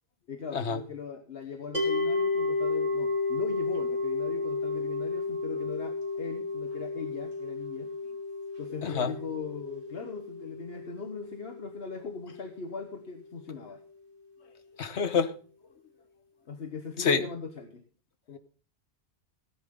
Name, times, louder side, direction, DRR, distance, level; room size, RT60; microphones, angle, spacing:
voice 1, 0.3-7.9 8.6-13.8 16.5-17.8 18.3-18.4, left 5 dB, 60° left, 7 dB, 1.3 m, -40 dB
sound 1, 1.7-12.9, left 3 dB, 50° right, 3.1 m, -32 dB
voice 2, 14.8-15.3 17.0-17.3, left 6 dB, 80° left, 12 dB, 1.4 m, -27 dB
16.5 x 10.5 x 3.7 m, 0.40 s
omnidirectional pair, 1.1 m